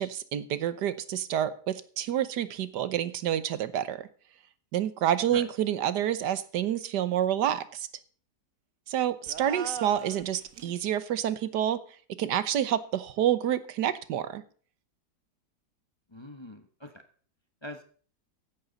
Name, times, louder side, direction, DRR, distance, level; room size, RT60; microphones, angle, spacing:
voice 1, 0.0-4.1 4.7-7.9 8.9-11.8 12.2-14.4, right 10 dB, 80° right, 14 dB, 1.5 m, -28 dB
sound 1, 9.3-10.8, right 7 dB, 55° right, 1.3 m, -40 dB
voice 2, 16.1-17.0 17.6-17.8, left 1 dB, 20° left, 6 dB, 1.0 m, -43 dB
14.5 x 11.0 x 4.0 m, 0.43 s
omnidirectional pair, 1.8 m